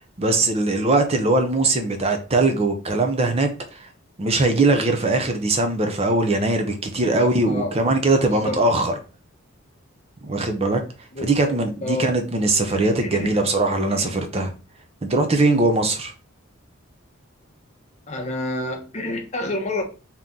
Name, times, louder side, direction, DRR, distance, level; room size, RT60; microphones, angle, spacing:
voice 1, 0.0-3.9 4.2-8.9 10.2-10.8 11.2-14.5 15.0-16.1, right 2 dB, 30° right, 0.5 m, -21 dB
voice 2, 7.2-7.8 8.4-8.6 11.1-11.6 11.8-12.2 12.6-13.4 13.9-14.5 18.1-19.8, left 1 dB, 35° left, 0.8 m, -29 dB
3.7 x 2.9 x 3.6 m
head